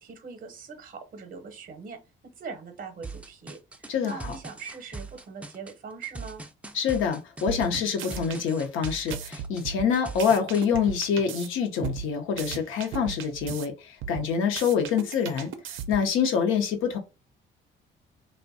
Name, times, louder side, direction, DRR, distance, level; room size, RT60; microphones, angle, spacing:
voice 1, 0.0-2.0 2.4-6.4, right 5 dB, 45° right, 0.6 m, -41 dB
sound 1, 3.0-10.7, right 3 dB, 5° right, 0.3 m, -41 dB
voice 2, 3.9-4.3 6.7-15.5 15.9-17.0, left 7 dB, 85° left, 0.6 m, -26 dB
sound 2, 7.5-8.4 8.8-11.5 11.8-13.7 14.0-16.2, right 8 dB, 90° right, 0.4 m, -36 dB
2.5 x 2.1 x 2.5 m
cardioid pair, 90°, 20 cm